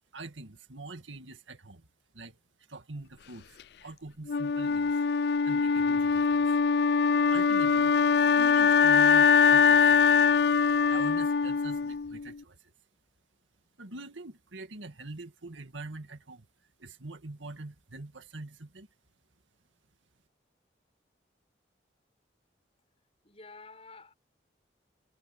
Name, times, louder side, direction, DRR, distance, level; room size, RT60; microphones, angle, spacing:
voice 1, 0.1-1.9 2.1-2.4 2.7-5.0 5.4-6.4 7.3-7.9 8.3-10.0 10.9-12.7 13.8-16.5 16.8-18.9, right 2 dB, 85° right, 2.1 m, -44 dB
Wind instrument woodwind instrument, 4.3-12.3, left 6 dB, 55° left, 0.4 m, -23 dB
voice 2, 23.2-24.1, left 3 dB, 30° left, 6.5 m, -50 dB
head